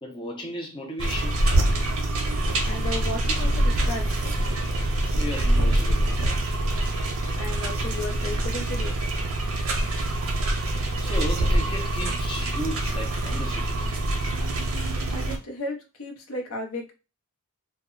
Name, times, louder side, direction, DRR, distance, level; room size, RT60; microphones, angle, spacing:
voice 1, 0.0-1.4 5.1-6.4 9.6-9.7 10.7-14.0 14.6-14.7, equal, 20° left, 0.5 m, -35 dB
sound 1, 1.0-15.4, right 1 dB, 65° right, 0.6 m, -25 dB
voice 2, 2.6-4.1 7.4-8.9 15.1-16.9, left 2 dB, 80° left, 0.7 m, -34 dB
2.1 x 2.0 x 3.6 m
head